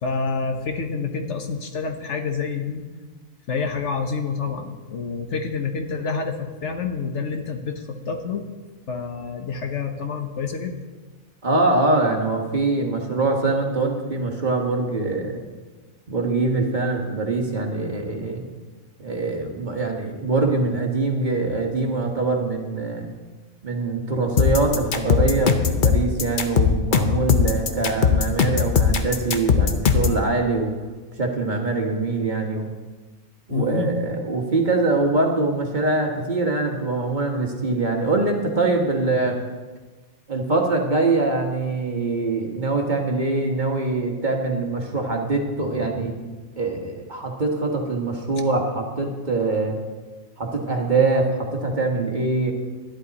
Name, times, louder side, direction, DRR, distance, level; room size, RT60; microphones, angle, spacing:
voice 1, 0.0-2.9 3.5-8.5 8.9-10.8 33.5-33.9, left 5 dB, 65° left, 5 dB, 1.2 m, -28 dB
voice 2, 11.4-15.4 16.1-18.4 19.0-23.1 23.6-30.7 31.2-32.7 33.5-39.4 40.3-46.2 46.6-49.8 50.4-52.5, right 3 dB, 35° right, 1 dB, 1.4 m, -23 dB
sound 1, 24.4-30.2, left 7 dB, 45° left, 0.8 m, -19 dB
11.5 x 11.5 x 4.1 m, 1.3 s
omnidirectional pair, 1.4 m